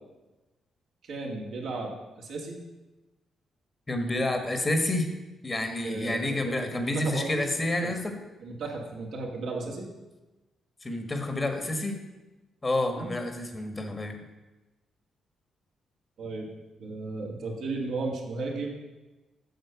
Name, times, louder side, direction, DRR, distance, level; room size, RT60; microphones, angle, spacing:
voice 1, 1.0-2.6 5.8-7.4 7.8-7.9 8.4-9.9 12.9-13.1 16.2-16.5 16.8-18.7, right 3 dB, 75° right, -1 dB, 2.0 m, -35 dB
voice 2, 3.9-5.1 5.4-8.1 10.8-12.0 12.6-14.2, left 1 dB, 30° left, 5 dB, 1.5 m, -29 dB
7.8 x 6.6 x 5.8 m, 1.1 s
cardioid pair, 65°, 0 cm